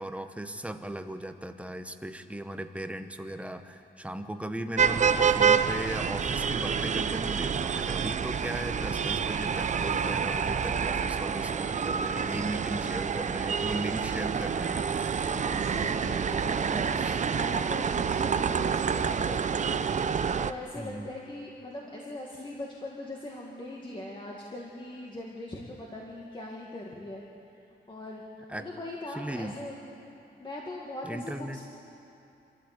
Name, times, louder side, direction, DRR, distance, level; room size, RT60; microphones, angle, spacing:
voice 1, 0.0-15.6 16.5-17.2 20.8-21.1 28.5-28.7 29.2-29.6 31.0-31.6, right 1 dB, 5° right, 8 dB, 0.9 m, -37 dB
sound 1, 4.8-20.5, right 6 dB, 40° right, 0.6 m, -28 dB
voice 2, 15.2-19.8 20.4-27.2 27.9-28.2 28.6-29.8 30.4-31.6, left 1 dB, 25° left, -3 dB, 1.9 m, -41 dB
26.0 x 14.0 x 8.3 m, 2.8 s
wide cardioid pair, 155°, 19 cm